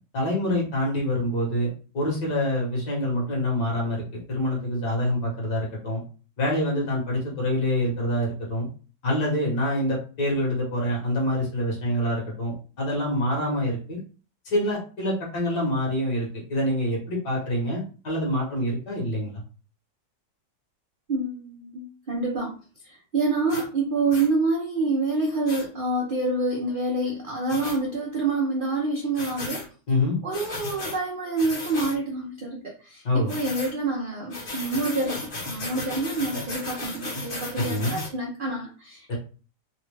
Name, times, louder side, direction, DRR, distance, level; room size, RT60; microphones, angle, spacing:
voice 1, 0.1-1.7 1.9-6.0 6.4-8.7 9.0-14.0 14.5-19.3 29.9-30.1 33.0-33.3 37.6-37.9, left 1 dB, 70° left, -4 dB, 2.2 m, -26 dB
voice 2, 21.1-22.5 22.8-29.6 30.2-39.1, right 3 dB, 75° right, -1 dB, 0.4 m, -27 dB
sound 1, 23.5-23.7 24.1-24.3 25.5-25.6 27.5-27.8 29.1-29.7 30.3-31.0 31.4-32.0 33.3-33.7 34.3-38.1, left 2 dB, 40° left, 0.8 m, -35 dB
4.1 x 2.4 x 3.2 m, 0.37 s
omnidirectional pair, 1.9 m